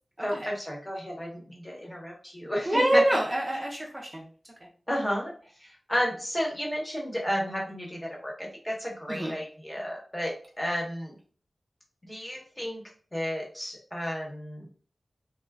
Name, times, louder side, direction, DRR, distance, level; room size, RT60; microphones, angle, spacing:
voice 1, 0.2-3.0 4.9-5.3 5.6-11.1 12.1-12.8 13.1-14.6, equal, 20° left, -1 dB, 1.0 m, -32 dB
voice 2, 2.7-4.3 9.1-9.4, right 1 dB, 25° right, -2 dB, 0.6 m, -26 dB
2.3 x 2.1 x 3.4 m, 0.42 s
wide cardioid pair, 75°, 0 cm